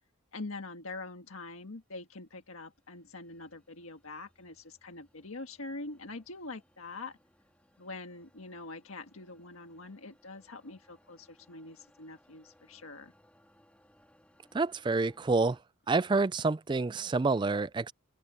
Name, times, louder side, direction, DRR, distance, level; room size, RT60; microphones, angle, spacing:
voice 1, 0.3-7.2 7.8-13.1, left 3 dB, 90° left, 1.6 m, -44 dB
sound 1, 1.7-15.6, equal, 5° left, 3.1 m, -67 dB
voice 2, 14.5-15.6 15.9-17.9, right 3 dB, 20° right, 0.3 m, -28 dB
open air
head